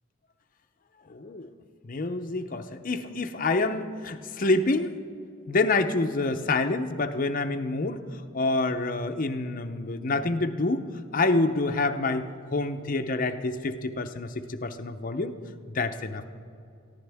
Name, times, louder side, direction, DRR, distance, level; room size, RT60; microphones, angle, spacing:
voice 1, 1.1-1.5 1.8-4.9 5.5-8.0 8.3-10.8 11.1-12.3 12.5-15.3 15.7-16.2, left 2 dB, 40° left, 7 dB, 0.6 m, -27 dB
22.0 x 14.5 x 3.5 m, 2.5 s
head